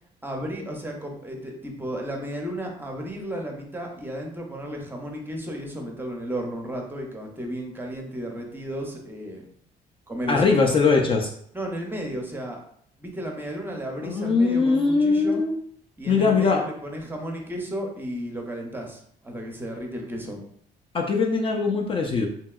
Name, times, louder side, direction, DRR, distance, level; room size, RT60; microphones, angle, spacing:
voice 1, 0.2-9.4 10.1-10.5 11.5-12.6 13.0-15.4 16.0-20.4, equal, 10° right, 1 dB, 0.6 m, -33 dB
voice 2, 10.3-11.3 14.0-15.5 16.1-16.6 20.9-22.3, left 4 dB, 30° left, 1 dB, 0.4 m, -21 dB
2.8 x 2.7 x 2.3 m, 0.64 s
cardioid pair, 110°, 17 cm